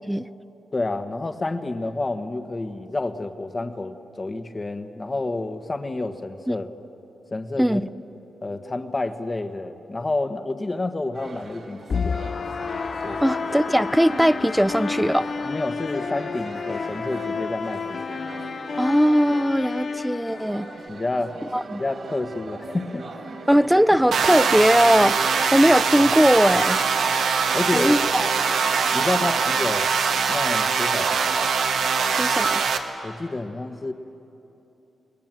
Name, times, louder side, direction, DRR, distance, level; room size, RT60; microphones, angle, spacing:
voice 1, 0.7-6.7 7.3-7.8 8.4-12.3 13.0-13.2 15.4-18.2 20.9-21.4 21.8-23.1 27.5-28.0 28.9-29.9 30.3-31.5 33.0-33.9, left 2 dB, 30° left, 7 dB, 1.5 m, -29 dB
voice 2, 7.6-7.9 13.2-15.3 18.8-20.7 21.5-21.8 23.5-25.2 25.5-26.8 27.7-28.3 32.2-32.6, equal, 5° right, 16 dB, 0.6 m, -19 dB
sound 1, 11.1-29.6, right 3 dB, 60° right, 3.0 m, -40 dB
sound 2, 11.9-20.9, left 5 dB, 50° left, 0.5 m, -30 dB
sound 3, 24.1-32.8, right 5 dB, 85° right, 1.5 m, -22 dB
29.0 x 20.5 x 7.6 m, 3.0 s
cardioid pair, 70°, 0 cm